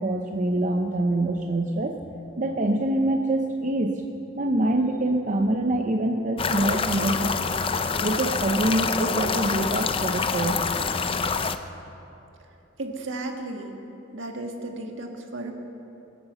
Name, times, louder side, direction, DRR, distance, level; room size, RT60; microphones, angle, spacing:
voice 1, 0.0-2.0 2.4-4.0 4.4-7.5 8.0-10.6, right 1 dB, 40° right, 3 dB, 0.7 m, -25 dB
sound 1, 6.4-11.6, left 5 dB, 25° left, 0.5 m, -26 dB
voice 2, 12.8-13.7 14.1-15.5, right 2 dB, 70° right, 3 dB, 1.7 m, -34 dB
22.5 x 8.5 x 6.9 m, 2.9 s
head